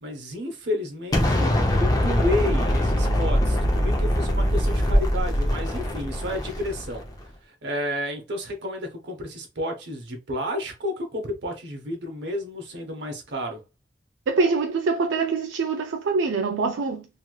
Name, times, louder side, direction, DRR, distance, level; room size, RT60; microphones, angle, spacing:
voice 1, 0.0-7.0 7.6-13.6, left 1 dB, 65° right, 0.9 m, -31 dB
Explosion, 1.1-7.1, equal, 20° left, 0.6 m, -22 dB
voice 2, 14.3-17.1, right 4 dB, 85° right, 0.4 m, -24 dB
3.0 x 2.9 x 2.3 m
head